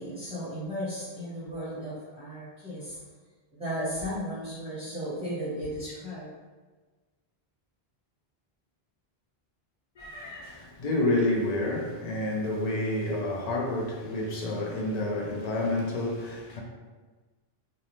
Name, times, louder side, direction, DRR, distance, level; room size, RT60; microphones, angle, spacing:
voice 1, 0.0-3.0 3.5-6.3, equal, 5° right, 0.6 m, -35 dB
voice 2, 10.0-16.6, left 1 dB, 55° left, 0.5 m, -29 dB
2.6 x 2.0 x 3.0 m
omnidirectional pair, 1.0 m